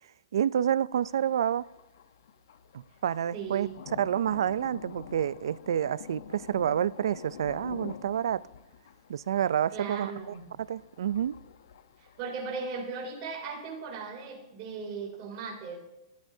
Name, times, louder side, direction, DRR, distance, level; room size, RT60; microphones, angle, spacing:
voice 1, 0.3-1.6 2.7-3.7 4.0-8.4 9.1-10.1 10.7-11.3, right 9 dB, 75° right, 0.4 m, -28 dB
Thunder, 0.9-12.2, left 8 dB, 65° left, 0.9 m, -48 dB
voice 2, 3.3-3.8 9.7-10.5 12.0-15.8, right 5 dB, 30° right, 2.8 m, -37 dB
25.0 x 12.5 x 2.7 m
hypercardioid pair, 170°, 2 cm